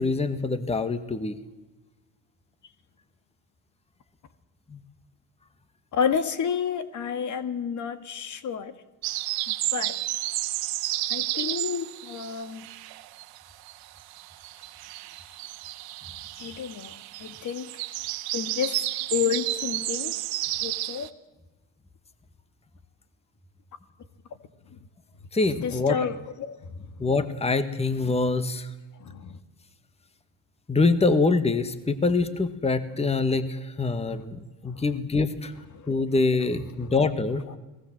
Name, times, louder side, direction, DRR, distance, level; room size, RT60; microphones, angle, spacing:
voice 1, 0.0-1.4 4.7-4.8 25.3-26.0 27.0-28.7 30.7-35.5 35.9-37.4, left 3 dB, 15° left, 11 dB, 1.9 m, -25 dB
voice 2, 5.9-8.7 9.7-9.9 11.1-12.7 16.4-17.7 18.3-18.8 19.1-20.1 20.6-21.1 25.6-26.9 29.0-29.4 34.1-34.2 34.7-34.8 35.7-35.9 36.8-36.9, left 7 dB, 45° left, 10 dB, 2.1 m, -30 dB
sound 1, 9.0-13.4 13.6-21.1, right 17 dB, 60° right, 1.8 m, -32 dB
29.5 x 19.5 x 7.7 m, 1.1 s
hypercardioid pair, 80°, 41 cm